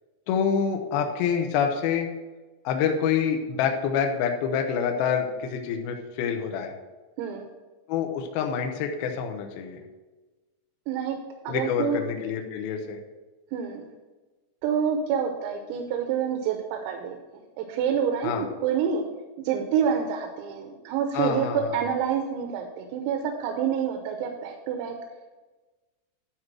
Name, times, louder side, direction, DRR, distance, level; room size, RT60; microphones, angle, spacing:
voice 1, 0.3-2.1 2.6-6.7 7.9-9.8 11.5-13.0 18.2-18.5 21.1-21.8, left 7 dB, 85° left, 3 dB, 2.1 m, -27 dB
voice 2, 11.5-12.0 13.5-13.9 14.6-17.2 17.6-19.0 19.5-25.0, right 7 dB, 85° right, 3 dB, 3.6 m, -27 dB
12.5 x 4.7 x 6.1 m, 1.2 s
omnidirectional pair, 6.0 m